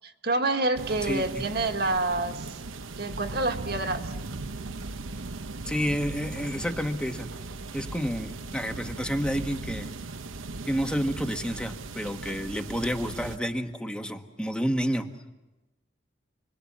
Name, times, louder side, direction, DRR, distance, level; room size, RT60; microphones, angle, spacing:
voice 1, 0.0-2.6 3.0-4.1, right 2 dB, 50° right, 5 dB, 1.7 m, -28 dB
sound 1, 0.8-13.4, right 3 dB, 80° right, 0.9 m, -38 dB
voice 2, 1.0-1.4 5.6-7.3 7.7-9.9 10.7-15.1, equal, 5° left, 5 dB, 1.2 m, -30 dB
29.5 x 21.5 x 7.4 m, 1.0 s
head